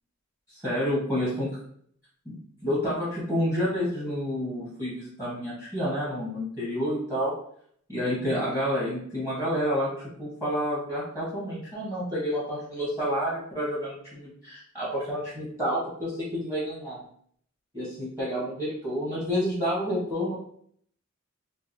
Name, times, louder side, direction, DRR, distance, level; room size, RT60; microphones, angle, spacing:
voice 1, 0.5-1.6 2.2-7.3 7.9-17.0 17.7-20.4, equal, 10° right, -8 dB, 1.3 m, -29 dB
3.6 x 2.7 x 3.1 m, 0.64 s
head